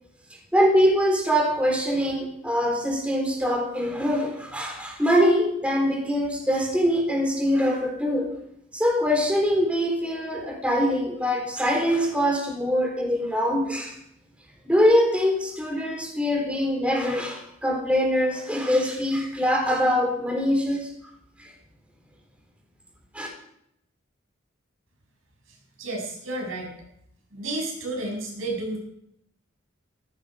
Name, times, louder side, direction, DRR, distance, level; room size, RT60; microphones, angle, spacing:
voice 1, 0.5-8.3 8.7-14.0 14.7-20.9 21.4-21.5 23.1-23.3, equal, 5° right, 0 dB, 3.9 m, -23 dB
voice 2, 25.8-26.7 27.3-28.8, right 2 dB, 90° right, 0 dB, 7.1 m, -31 dB
17.0 x 14.5 x 5.1 m, 0.73 s
head